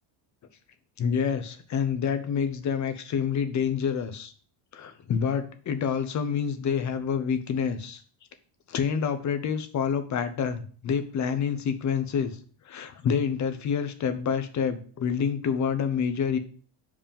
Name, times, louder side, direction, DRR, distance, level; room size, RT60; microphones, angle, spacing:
voice 1, 1.0-4.3 4.7-8.0 8.7-12.4 12.6-16.4, left 7 dB, 35° left, 9 dB, 0.7 m, -27 dB
5.2 x 5.0 x 5.2 m, 0.43 s
cardioid pair, 165°, 49 cm